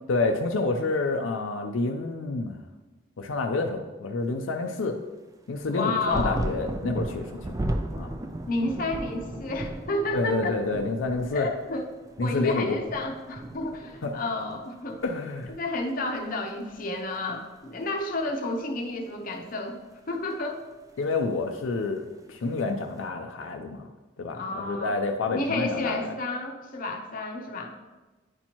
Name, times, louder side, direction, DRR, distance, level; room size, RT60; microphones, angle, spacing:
voice 1, 0.1-2.6 3.2-5.0 5.5-7.6 8.0-8.1 10.1-11.5 12.2-12.8 14.0-14.1 15.0-15.5 21.0-23.8 24.2-26.1, left 3 dB, 75° left, 4 dB, 0.5 m, -28 dB
sound 1, 5.6-14.6 14.9-15.8 16.7-16.8, right 1 dB, 15° right, 0.3 m, -35 dB
voice 2, 5.7-6.4 8.5-10.6 11.3-11.9 12.2-15.0 15.5-20.6 24.3-25.0 25.3-27.7, left 2 dB, 45° left, 2 dB, 0.7 m, -31 dB
9.7 x 4.3 x 2.9 m, 1.2 s
head